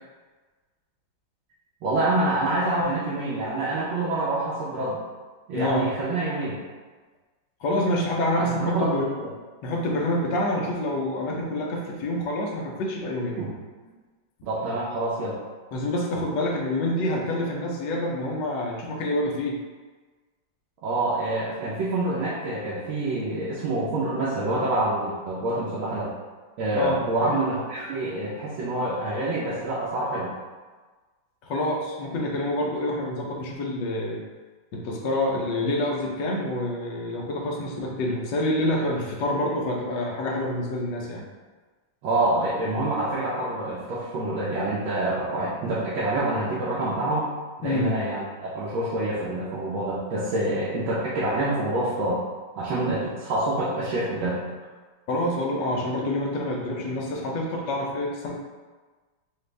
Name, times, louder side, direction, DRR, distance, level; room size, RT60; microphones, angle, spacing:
voice 1, 1.8-5.0 5.5-6.6 8.4-9.3 13.4-13.5 14.4-15.4 20.8-26.1 26.6-30.3 42.0-47.3 47.6-52.2 52.6-54.4, right 2 dB, 80° right, -7 dB, 1.5 m, -26 dB
voice 2, 5.5-5.9 7.6-9.1 9.6-13.4 15.7-19.6 26.7-27.5 31.4-34.2 34.7-41.2 47.6-47.9 55.1-58.3, left 1 dB, 70° left, -2 dB, 1.3 m, -27 dB
5.1 x 2.4 x 3.3 m, 1.4 s
omnidirectional pair, 2.2 m